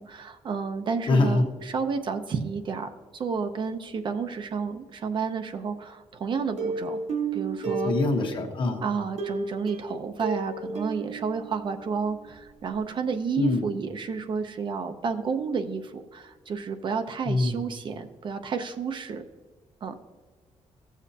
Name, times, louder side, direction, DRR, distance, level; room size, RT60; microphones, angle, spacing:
voice 1, 0.0-7.0 7.3-7.9 8.8-19.2 19.8-19.9, right 5 dB, 45° right, 7 dB, 0.6 m, -31 dB
voice 2, 1.1-1.4 7.8-8.8 13.4-13.6 17.3-17.6, left 2 dB, 45° left, 3 dB, 1.2 m, -24 dB
Plucked string instrument, 6.6-8.5 9.2-12.0 12.3-12.4 12.7-12.8, right 3 dB, 85° right, 3.4 m, -32 dB
15.5 x 7.2 x 2.8 m, 1.4 s
wide cardioid pair, 175°, 12 cm